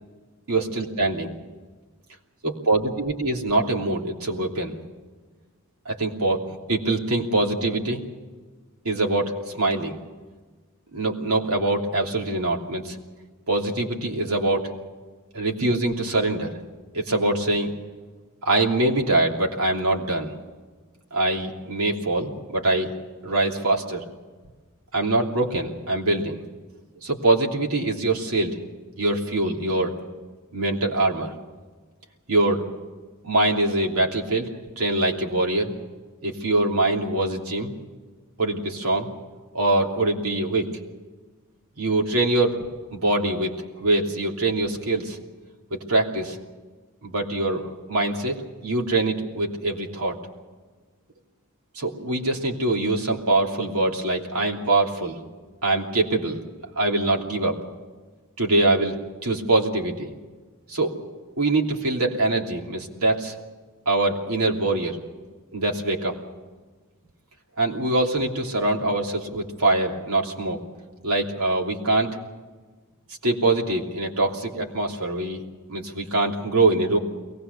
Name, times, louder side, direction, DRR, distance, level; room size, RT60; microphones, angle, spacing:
voice 1, 0.5-1.3 2.4-4.8 5.8-8.0 8.8-9.9 10.9-13.0 13.5-14.7 15.3-16.6 16.9-17.7 18.4-20.3 21.1-22.9 23.2-24.0 24.9-26.4 27.0-28.6 29.0-29.9 30.5-31.3 32.3-32.6 33.2-34.5 34.8-35.7 36.2-37.7 38.4-39.1 39.5-40.7 41.8-42.6 42.9-43.5 43.8-45.2 45.7-46.4 47.0-50.2 51.7-55.2 55.6-56.4 56.7-57.6 58.4-59.0 59.2-60.1 60.7-61.0 61.4-63.3 63.8-65.0 65.5-66.1 67.6-70.6 71.0-72.2 73.2-75.4 75.7-77.0, right 2 dB, 85° right, 0 dB, 3.0 m, -23 dB
23.0 x 19.5 x 6.8 m, 1.4 s
head